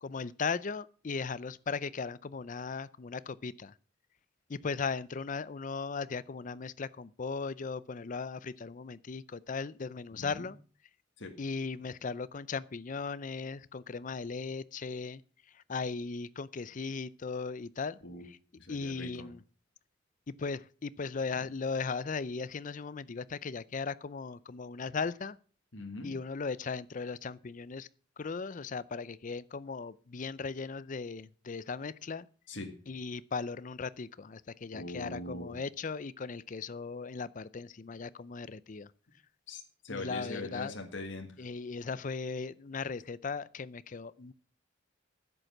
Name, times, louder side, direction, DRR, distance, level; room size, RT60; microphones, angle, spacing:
voice 1, 0.0-3.7 4.5-10.6 11.4-15.2 15.5-18.0 18.3-18.4 18.7-19.4 20.4-25.4 26.0-27.9 28.2-32.3 32.9-38.9 39.9-40.7 41.4-44.3, left 4 dB, 40° left, 0.5 m, -37 dB
voice 2, 10.1-10.5 11.2-11.3 18.0-18.2 18.6-19.3 21.3-21.5 25.7-26.1 32.5-32.7 34.7-35.6 39.5-41.3, left 2 dB, 65° left, 1.8 m, -42 dB
11.0 x 7.9 x 6.0 m
head